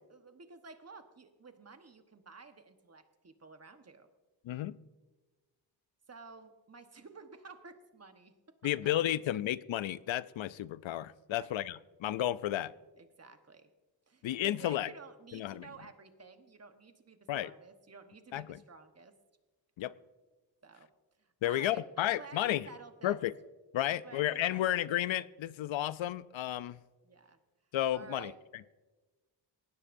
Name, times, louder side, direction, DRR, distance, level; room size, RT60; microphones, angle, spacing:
voice 1, 0.1-4.1 6.1-8.3 11.3-11.5 13.0-13.7 14.1-19.1 20.6-20.9 21.2-23.2 23.9-24.7 27.0-27.4 27.9-28.4, right 4 dB, 35° right, 1.2 m, -52 dB
voice 2, 4.4-4.8 8.6-12.7 14.2-14.9 15.3-15.7 17.3-17.5 18.3-18.6 19.8-19.9 21.4-22.7 23.0-23.3 23.7-26.8 27.7-28.3, left 13 dB, 85° left, 0.6 m, -32 dB
19.0 x 16.5 x 2.6 m
wide cardioid pair, 95°, 45 cm